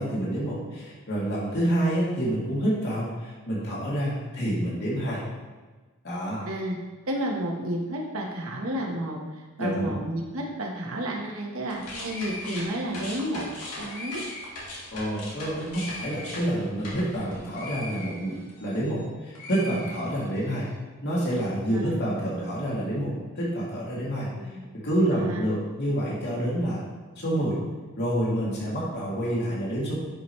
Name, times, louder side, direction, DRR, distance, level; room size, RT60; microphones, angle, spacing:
voice 1, 0.0-5.2 6.0-6.4 9.6-9.9 14.9-20.7 21.0-24.3 24.8-26.8 27.2-27.6 28.0-30.0, right 1 dB, 50° left, -6 dB, 2.5 m, -28 dB
voice 2, 6.4-6.8 7.0-13.5 13.7-14.2 21.7-21.9 24.3-24.7 25.1-25.4, right 1 dB, 65° right, -1 dB, 1.4 m, -31 dB
sound 1, 11.6-19.0 19.3-20.5, left 2 dB, 80° left, 2.0 m, -39 dB
10.5 x 5.1 x 3.2 m, 1.3 s
head